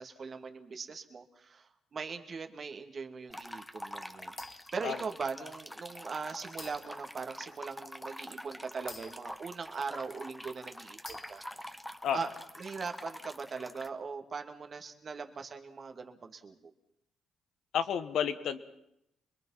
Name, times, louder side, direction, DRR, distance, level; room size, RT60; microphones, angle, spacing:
voice 1, 0.0-11.8 12.1-12.3 12.6-16.7, right 5 dB, 45° right, 5 dB, 2.2 m, -40 dB
sound 1, 3.3-13.9, equal, 5° left, 1.3 m, -46 dB
sound 2, 4.4-4.9 5.5-5.6 6.6-7.1 8.9-10.1 11.0-11.7, left 3 dB, 30° left, 1.7 m, -50 dB
voice 2, 17.7-18.6, left 8 dB, 70° left, 10 dB, 1.6 m, -31 dB
25.0 x 22.0 x 5.8 m, 0.80 s
cardioid pair, 90°, 0 cm